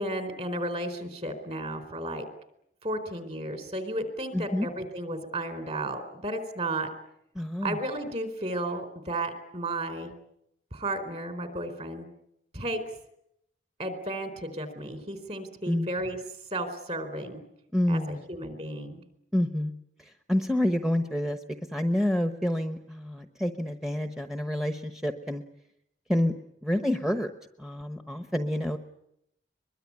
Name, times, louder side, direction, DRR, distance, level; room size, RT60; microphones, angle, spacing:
voice 1, 0.0-2.3 2.8-6.9 7.6-10.1 10.7-12.1 12.5-12.8 13.8-16.2 16.5-17.4 17.9-19.0, right 1 dB, 35° right, 9 dB, 4.1 m, -33 dB
voice 2, 4.3-4.7 7.3-7.8 15.7-15.9 17.7-18.2 19.3-19.7 20.3-21.4 21.7-25.4 26.1-26.3 26.6-27.3 27.6-28.8, left 1 dB, ahead, 7 dB, 1.0 m, -28 dB
22.5 x 22.5 x 9.8 m, 0.79 s
head